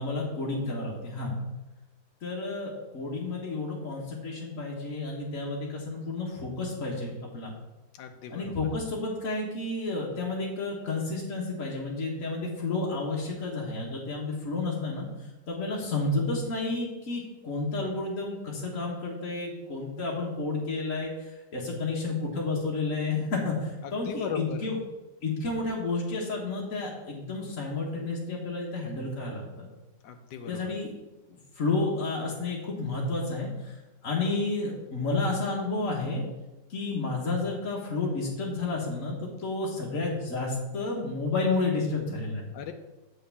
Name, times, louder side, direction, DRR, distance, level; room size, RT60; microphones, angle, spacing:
voice 1, 0.0-1.4 2.2-7.5 8.3-15.1 15.5-21.1 21.5-24.8 25.2-29.7 30.5-30.9 31.6-33.7 34.0-36.2 36.7-42.5, left 3 dB, 45° left, -4 dB, 1.7 m, -31 dB
voice 2, 8.0-8.5 24.0-24.6 30.0-30.7 42.5-42.7, left 6 dB, 70° left, 6 dB, 1.4 m, -36 dB
8.4 x 4.5 x 7.0 m, 1.0 s
omnidirectional pair, 2.0 m